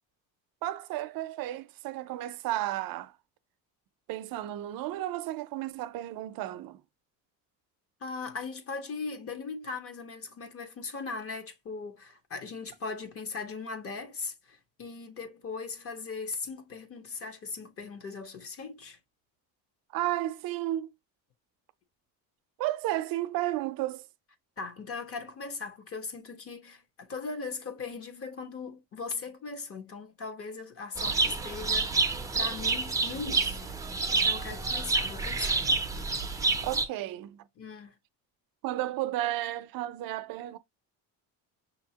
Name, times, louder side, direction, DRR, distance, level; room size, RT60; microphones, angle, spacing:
voice 1, 0.6-3.1 4.1-6.8 19.9-20.9 22.6-24.0 36.6-37.5 38.6-40.6, right 15 dB, 65° right, 0.6 m, -33 dB
voice 2, 8.0-19.0 24.6-33.7 34.1-35.6 37.6-38.0, left 4 dB, 35° left, 1.1 m, -39 dB
sound 1, 31.0-36.8, right 3 dB, 10° right, 0.5 m, -28 dB
6.2 x 2.8 x 2.8 m
cardioid pair, 130°, 38 cm